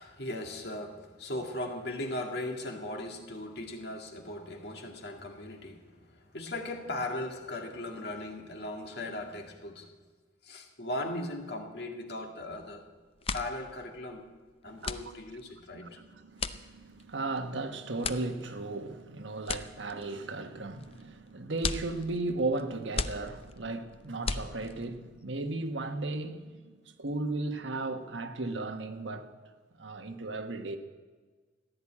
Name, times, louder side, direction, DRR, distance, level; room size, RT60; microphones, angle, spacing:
voice 1, 0.0-9.9 10.4-12.8 13.3-14.3 14.6-16.0 23.0-23.1, left 1 dB, 60° left, 2.0 m, -38 dB
sound 1, 12.5-12.8 13.1-25.0, left 4 dB, 30° left, 0.6 m, -38 dB
voice 2, 14.7-15.1 15.8-26.7 27.0-29.3 29.8-30.8, right 2 dB, 85° right, 1.3 m, -35 dB
15.0 x 10.5 x 8.5 m
head